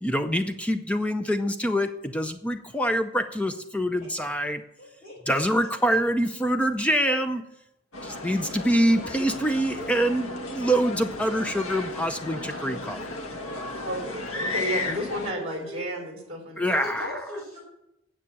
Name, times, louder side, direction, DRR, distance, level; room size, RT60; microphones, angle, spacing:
voice 1, 0.0-4.6 5.3-7.4 8.0-13.0 16.6-17.2, equal, 5° left, 8 dB, 0.5 m, -25 dB
voice 2, 4.0-4.4 4.8-6.0 13.4-14.0 14.8-16.0 16.6-17.6, equal, 35° left, -8 dB, 5.0 m, -40 dB
sound 1, 7.9-15.3, left 2 dB, 90° left, 1.3 m, -34 dB
voice 3, 13.8-16.6, equal, 30° right, 1 dB, 3.7 m, -32 dB
9.5 x 7.4 x 8.7 m, 0.84 s
head